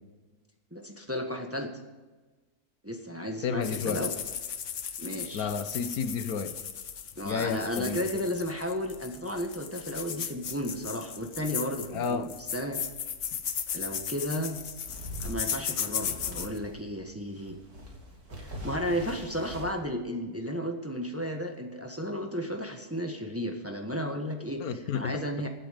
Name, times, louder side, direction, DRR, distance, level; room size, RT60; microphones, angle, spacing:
voice 1, 0.7-1.7 2.8-4.1 5.0-5.5 7.2-12.8 13.7-14.6 15.2-17.6 18.4-25.5, equal, 10° right, 3 dB, 1.2 m, -33 dB
voice 2, 3.4-4.0 5.3-6.5 7.2-8.0 11.9-12.3 24.6-25.2, left 6 dB, 80° left, 10 dB, 1.4 m, -31 dB
sound 1, 3.6-16.6, left 8 dB, 60° left, 1.2 m, -36 dB
sound 2, 14.6-16.9 17.2-19.7, left 1 dB, 85° right, 3.3 m, -42 dB
16.0 x 9.2 x 5.1 m, 1.3 s
omnidirectional pair, 1.6 m